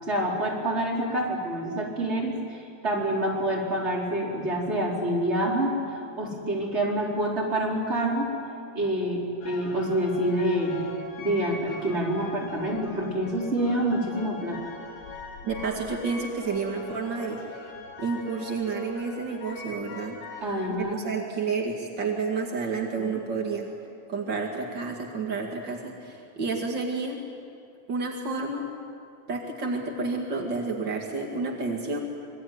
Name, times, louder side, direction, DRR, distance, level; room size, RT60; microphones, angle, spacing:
voice 1, 0.0-8.3 8.7-10.8 11.2-14.6 20.4-21.0 22.9-23.2, right 1 dB, 15° right, -3 dB, 4.3 m, -27 dB
sound 1, 9.4-20.7, left 3 dB, 85° left, 6.0 m, -42 dB
voice 2, 15.4-17.4 18.0-20.4 20.9-23.7 24.1-27.2 27.9-28.6 29.3-32.0, right 4 dB, 60° right, 1 dB, 1.1 m, -30 dB
26.0 x 24.0 x 9.5 m, 2.5 s
omnidirectional pair, 5.6 m